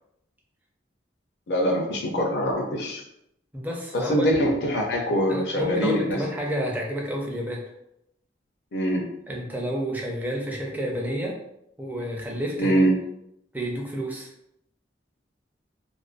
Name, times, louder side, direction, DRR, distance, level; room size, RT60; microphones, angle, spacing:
voice 1, 1.5-3.0 3.9-6.2 8.7-9.1 12.6-12.9, equal, 65° left, 0 dB, 0.5 m, -23 dB
voice 2, 3.5-4.3 5.3-7.7 9.3-11.4 11.8-12.8 13.5-14.3, equal, 10° right, -1 dB, 0.4 m, -30 dB
2.4 x 2.2 x 2.4 m, 0.79 s
head